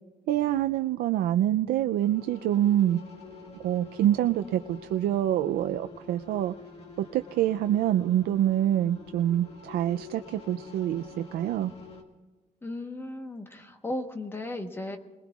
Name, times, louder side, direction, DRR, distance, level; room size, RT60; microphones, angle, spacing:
voice 1, 0.3-3.0 3.6-6.5 7.1-11.1 11.3-11.7, right 12 dB, 80° right, 8 dB, 0.4 m, -26 dB
sound 1, 2.0-12.0, left 3 dB, 40° left, 1.9 m, -47 dB
voice 2, 12.6-15.0, left 1 dB, 15° left, 5 dB, 1.1 m, -35 dB
29.5 x 20.5 x 2.4 m, 1.3 s
cardioid pair, 170°, 16 cm